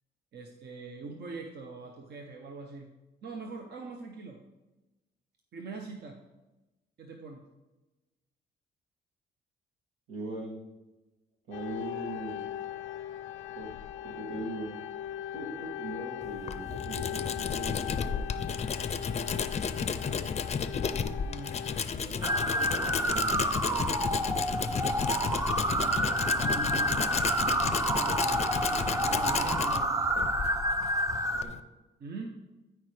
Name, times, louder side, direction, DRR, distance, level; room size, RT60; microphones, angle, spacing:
voice 1, 0.3-2.9 3.2-4.4 5.5-6.2 7.0-7.4 21.2-21.6 25.8-27.3 27.6-30.1 32.0-32.3, right 3 dB, 55° right, 2 dB, 0.9 m, -43 dB
voice 2, 10.1-10.6 11.5-12.4 13.5-13.7 14.0-14.8 15.3-18.3 21.9-23.3 23.7-24.0 31.4-31.6, right 1 dB, 85° right, -3 dB, 2.4 m, -40 dB
sound 1, 11.5-21.8, left 11 dB, 85° left, 0.5 m, -39 dB
Tools, 16.2-31.6, left 6 dB, 35° left, 0.5 m, -33 dB
sound 2, 22.2-31.4, right 1 dB, 15° right, 0.6 m, -29 dB
13.0 x 4.6 x 3.3 m, 1.1 s
cardioid pair, 90°, 20 cm